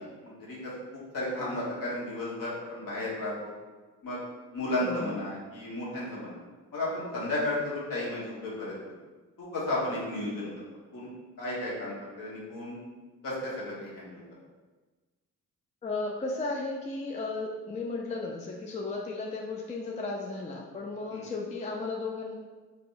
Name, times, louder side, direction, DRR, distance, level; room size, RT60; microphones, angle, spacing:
voice 1, 0.0-3.5 4.0-4.2 4.5-6.3 6.7-8.8 9.4-10.5 10.9-11.1 11.4-12.8 13.2-14.2 21.1-21.3, left 1 dB, 50° left, -6 dB, 1.3 m, -33 dB
voice 2, 4.8-5.2 15.8-22.3, left 3 dB, 20° left, -1 dB, 0.4 m, -34 dB
4.0 x 2.2 x 2.6 m, 1.3 s
hypercardioid pair, 40°, 41 cm